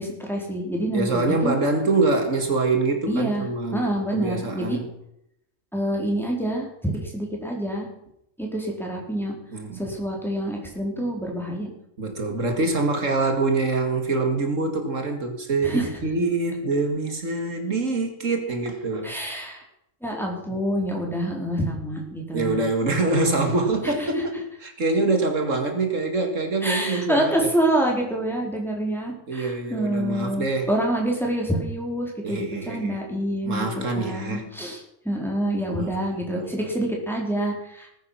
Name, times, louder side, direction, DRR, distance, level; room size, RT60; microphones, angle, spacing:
voice 1, 0.0-1.6 3.1-4.8 5.7-7.9 8.4-9.3 9.7-11.7 15.6-15.9 19.0-19.6 20.0-22.6 22.9-23.5 23.8-24.2 26.6-37.9, right 1 dB, ahead, -1 dB, 4.5 m, -27 dB
voice 2, 0.9-3.9 4.1-4.8 9.5-9.8 12.0-19.1 22.3-27.5 29.3-30.7 32.2-33.0 33.5-34.5 35.7-36.5, right 3 dB, 75° right, 5 dB, 2.5 m, -25 dB
19.5 x 9.8 x 5.9 m, 0.78 s
omnidirectional pair, 1.3 m